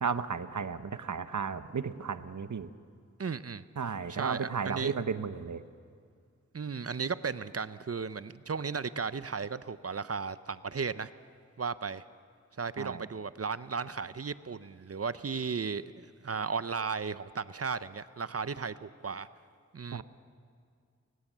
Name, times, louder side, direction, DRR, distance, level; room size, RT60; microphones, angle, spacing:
voice 1, 0.0-2.7 3.8-5.6 12.8-13.0 19.9-20.0, right 6 dB, 90° right, 12 dB, 0.9 m, -34 dB
voice 2, 3.2-3.6 4.1-4.9 6.5-11.1 11.6-12.0 12.6-19.3 19.7-20.0, right 5 dB, 55° right, 15 dB, 0.7 m, -35 dB
30.0 x 15.5 x 7.3 m, 2.2 s
wide cardioid pair, 55°, 29 cm